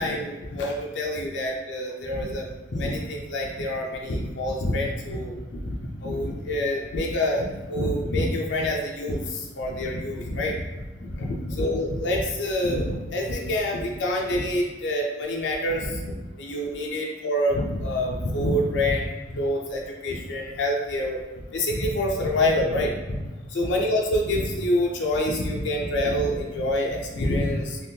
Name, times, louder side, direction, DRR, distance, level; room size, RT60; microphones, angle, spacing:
voice 1, 0.0-10.6 11.0-16.1 16.4-21.2 21.5-23.2 23.5-27.9, left 1 dB, 70° left, -1 dB, 0.5 m, -26 dB
3.5 x 2.3 x 2.7 m, 1.1 s
head